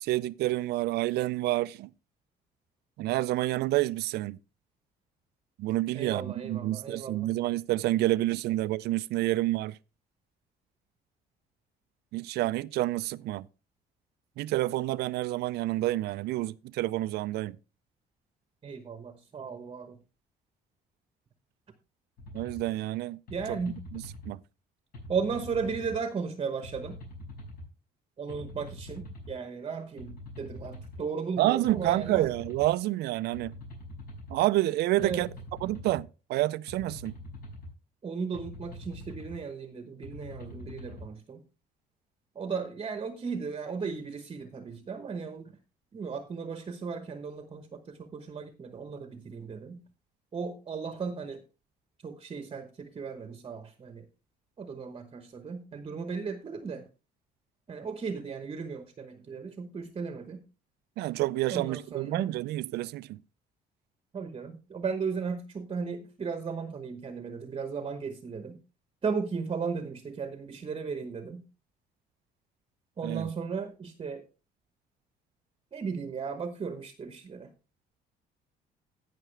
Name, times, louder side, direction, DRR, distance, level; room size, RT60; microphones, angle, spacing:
voice 1, 0.0-1.9 3.0-4.4 5.6-9.8 12.1-13.5 14.4-17.6 22.3-23.2 23.5-23.6 23.9-24.4 31.4-33.5 34.3-35.3 35.6-37.1 61.0-63.2 73.0-73.3, right 16 dB, 75° right, 0.5 m, -29 dB
voice 2, 5.9-7.3 18.6-20.0 23.3-23.8 25.1-27.0 28.2-32.3 35.0-35.3 38.0-41.4 42.3-45.6 45.9-49.8 50.3-51.4 52.0-54.1 54.6-56.9 57.7-60.4 61.5-62.3 64.1-68.6 69.0-71.4 73.0-74.2 75.7-77.5, right 5 dB, 30° right, 1.0 m, -36 dB
sound 1, 22.2-22.6 23.3-24.3 24.9-26.0 26.6-27.7 28.3-29.3 30.0-31.0 31.6-32.7 33.3-34.4 35.0-36.0 36.7-37.7 38.3-39.4 40.0-41.0, left 1 dB, 60° left, 5.6 m, -44 dB
15.5 x 5.9 x 3.3 m
cardioid pair, 110°, 17 cm